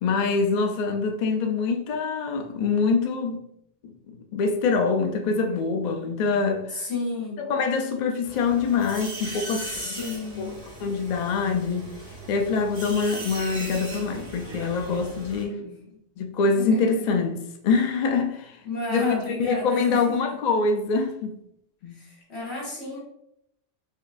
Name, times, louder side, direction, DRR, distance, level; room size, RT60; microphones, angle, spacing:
voice 1, 0.0-3.5 3.8-6.9 7.4-10.0 10.4-10.5 10.8-11.9 12.3-15.6 16.2-18.6 18.9-21.4 21.8-22.0, left 4 dB, 80° left, 0.4 m, -25 dB
voice 2, 6.7-7.4 9.4-10.5 15.5-15.7 16.6-16.8 18.7-20.4 21.9-23.0, left 3 dB, 60° left, 1.7 m, -31 dB
sound 1, 8.2-15.4, right 1 dB, 85° right, 1.8 m, -39 dB
4.4 x 2.7 x 2.5 m
omnidirectional pair, 1.3 m